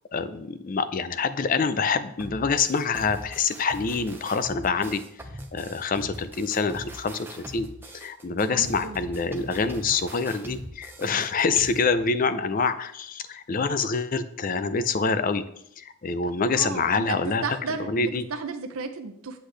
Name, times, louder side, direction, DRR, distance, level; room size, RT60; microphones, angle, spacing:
voice 1, 0.1-5.0 5.5-7.7 7.9-15.4 15.8-17.4 17.9-18.2, left 4 dB, 40° left, 11 dB, 0.4 m, -26 dB
sound 1, 2.2-11.9, equal, 10° right, 0.7 m, -41 dB
voice 2, 8.3-9.0 16.5-19.4, right 4 dB, 75° right, 6 dB, 0.6 m, -34 dB
8.2 x 8.0 x 3.3 m, 0.73 s
head